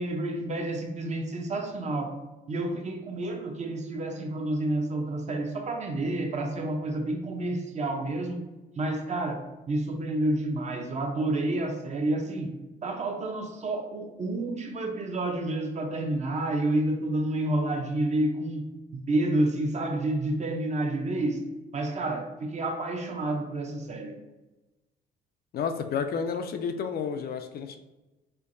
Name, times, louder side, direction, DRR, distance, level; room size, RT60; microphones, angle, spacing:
voice 1, 0.0-2.2 2.5-8.4 8.8-12.5 12.8-18.7 18.9-24.2, right 1 dB, 35° right, 3 dB, 0.6 m, -29 dB
voice 2, 25.5-27.8, left 6 dB, 50° left, 7 dB, 0.4 m, -31 dB
4.4 x 2.6 x 2.5 m, 1.1 s
cardioid pair, 100°, 20 cm